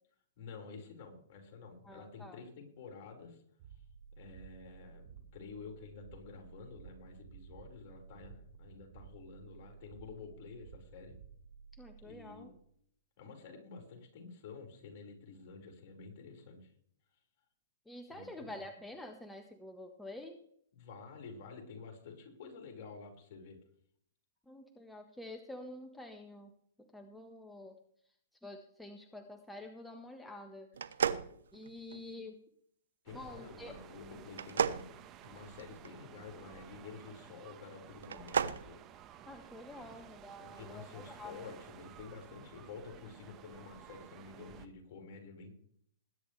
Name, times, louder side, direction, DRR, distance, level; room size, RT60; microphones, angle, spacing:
voice 1, 0.4-3.4 4.2-11.1 12.0-12.5 13.2-16.7 18.1-18.6 20.7-23.6 33.0-35.0 35.2-38.8 39.7-40.0 40.4-45.5, left 5 dB, 50° left, 1 dB, 5.0 m, -50 dB
voice 2, 1.8-2.4 11.7-12.5 17.9-20.4 24.5-26.5 26.8-27.8 28.4-31.0 31.5-32.4 33.1-33.7 39.3-41.4, left 1 dB, 5° left, 4 dB, 1.3 m, -48 dB
sound 1, 3.6-12.7, right 7 dB, 45° right, 2.9 m, -55 dB
sound 2, 30.7-32.1 34.3-35.9 38.0-38.6, right 7 dB, 80° right, 0.9 m, -34 dB
sound 3, 33.1-44.7, right 10 dB, 30° right, 1.2 m, -54 dB
20.5 x 10.0 x 3.3 m, 0.65 s
hypercardioid pair, 130°, 0 cm